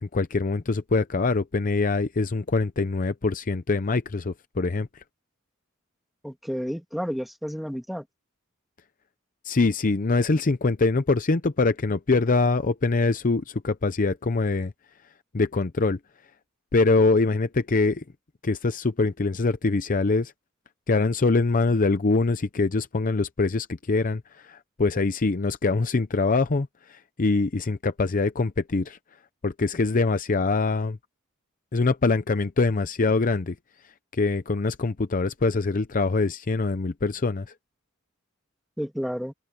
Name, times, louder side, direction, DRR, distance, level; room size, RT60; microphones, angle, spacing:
voice 1, 0.0-4.9 9.4-14.7 15.3-16.0 16.7-18.0 18.4-20.3 20.9-29.0 29.4-31.0 31.7-33.6 34.1-37.5, left 3 dB, 40° left, 0.6 m, -24 dB
voice 2, 6.2-8.0 38.8-39.3, equal, ahead, 2.5 m, -31 dB
open air
head